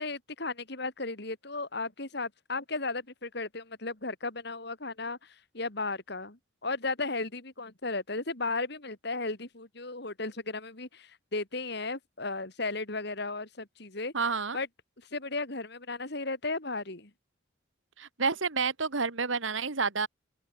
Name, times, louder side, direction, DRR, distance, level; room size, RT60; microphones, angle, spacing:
voice 1, 0.0-14.1 14.5-14.7 15.1-17.1, left 3 dB, 55° left, 2.8 m, -35 dB
voice 2, 14.1-14.6 18.0-20.1, right 4 dB, 75° right, 1.8 m, -29 dB
open air
head